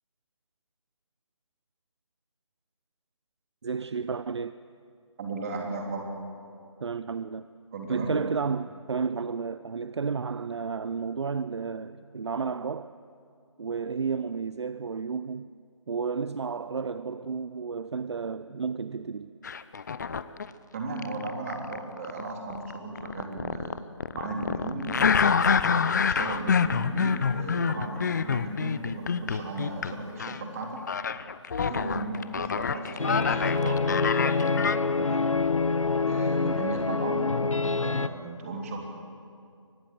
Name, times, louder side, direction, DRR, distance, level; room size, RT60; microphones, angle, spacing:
voice 1, 3.6-4.6 6.8-7.5 7.9-12.9 13.6-15.5 15.9-19.3, right 5 dB, 60° right, 0.6 m, -32 dB
voice 2, 5.2-6.1 7.7-8.2 20.7-23.8 24.1-25.4 26.0-30.8 31.6-35.2 36.1-38.8, right 2 dB, 30° right, 3.4 m, -36 dB
sound 1, 19.4-20.5 21.0-29.9 30.2-30.4 30.9-34.8, left 6 dB, 35° left, 0.6 m, -27 dB
sound 2, 33.0-38.1, left 4 dB, 85° left, 1.0 m, -26 dB
23.0 x 19.0 x 7.7 m
figure-of-eight pair, 155°, 16 cm